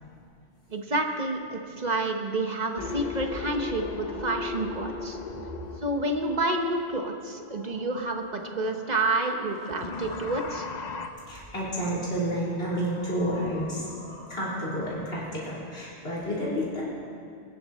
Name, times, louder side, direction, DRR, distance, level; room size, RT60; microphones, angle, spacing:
voice 1, 0.7-5.2 5.8-10.7, right 2 dB, 45° right, 4 dB, 1.1 m, -29 dB
sound 1, 2.8-7.3 9.6-11.1, left 4 dB, 45° left, 0.8 m, -36 dB
voice 2, 5.3-5.8 11.1-16.8, equal, 70° left, -8 dB, 3.8 m, -31 dB
sound 2, 6.4-14.8, left 1 dB, 5° left, 2.3 m, -48 dB
22.0 x 10.0 x 4.2 m, 2.3 s
omnidirectional pair, 1.1 m